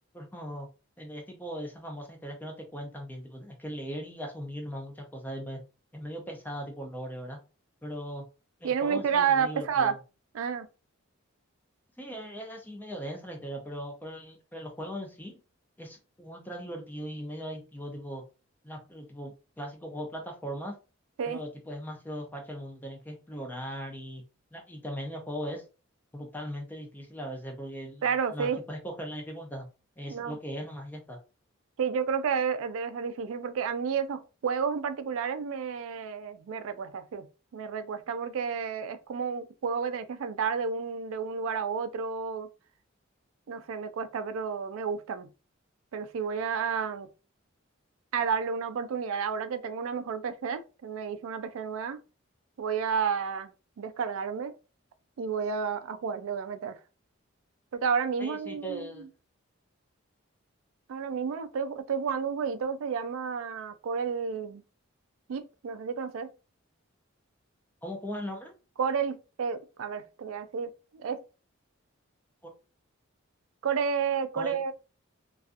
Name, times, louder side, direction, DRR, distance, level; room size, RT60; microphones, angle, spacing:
voice 1, 0.1-0.7 1.0-5.6 5.9-7.4 7.8-8.2 8.6-10.0 12.0-15.4 15.8-18.2 18.6-20.8 21.3-24.2 24.5-25.7 26.1-29.7 30.0-31.2 58.2-59.1 67.8-68.5 72.4-72.5 74.4-74.6, equal, 10° left, 0.4 m, -39 dB
voice 2, 8.6-9.9 10.3-10.7 21.2-21.4 28.0-28.6 30.1-30.4 31.8-37.3 37.5-42.5 43.5-45.3 45.9-47.1 48.1-52.0 52.6-53.5 53.8-54.5 55.2-56.8 57.7-59.1 60.9-64.6 65.3-66.3 68.8-71.2 73.6-74.7, right 6 dB, 75° right, 0.3 m, -31 dB
2.4 x 2.3 x 2.5 m
head